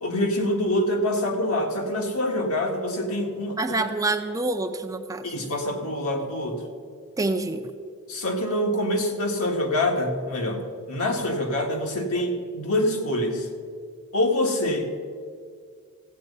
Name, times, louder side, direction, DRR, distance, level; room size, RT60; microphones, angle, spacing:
voice 1, 0.0-3.8 5.2-6.6 8.1-13.5 14.1-15.0, left 1 dB, 75° left, 2 dB, 1.7 m, -25 dB
voice 2, 3.6-5.3 7.2-7.7, right 2 dB, 15° right, 5 dB, 0.5 m, -27 dB
15.0 x 8.4 x 5.4 m, 2.1 s
head